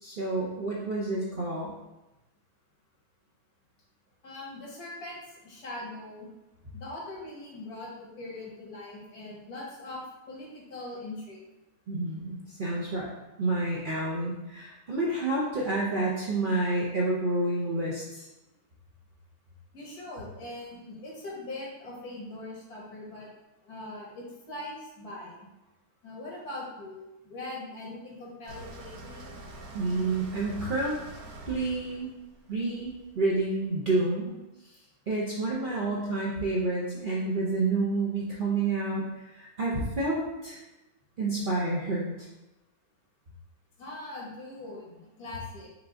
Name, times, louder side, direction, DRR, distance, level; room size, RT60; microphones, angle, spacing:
voice 1, 0.0-1.7 11.9-13.1 13.4-18.3 29.7-31.0 31.5-32.1 32.5-34.4 35.1-40.6 41.2-42.3, right 2 dB, 50° right, -5 dB, 0.6 m, -29 dB
voice 2, 4.2-6.3 6.7-11.4 19.7-23.3 23.6-25.5 26.0-29.3 43.8-45.7, left 2 dB, 80° left, -3 dB, 1.7 m, -41 dB
sound 1, 28.5-33.4, right 2 dB, 75° right, 1.2 m, -45 dB
4.9 x 2.4 x 3.7 m, 0.97 s
omnidirectional pair, 1.6 m